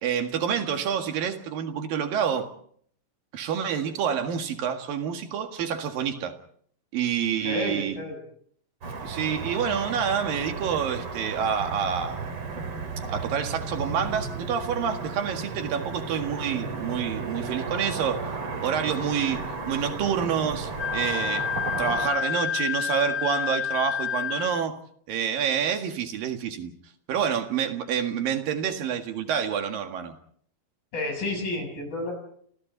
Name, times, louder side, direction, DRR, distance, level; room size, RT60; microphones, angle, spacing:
voice 1, 0.0-2.5 3.3-6.4 6.9-8.0 9.0-12.3 13.1-18.3 18.6-21.5 21.8-24.8 25.1-26.8 27.1-30.2, right 7 dB, 80° right, 3.6 m, -28 dB
voice 2, 7.4-8.2 30.9-32.1, left 2 dB, 80° left, 9.8 m, -30 dB
Car passing by / Traffic noise roadway noise, 8.8-22.1, right 4 dB, 40° right, 3.3 m, -34 dB
Wind instrument woodwind instrument, 20.8-24.6, left 9 dB, 60° left, 1.7 m, -29 dB
29.0 x 28.5 x 4.1 m
omnidirectional pair, 4.0 m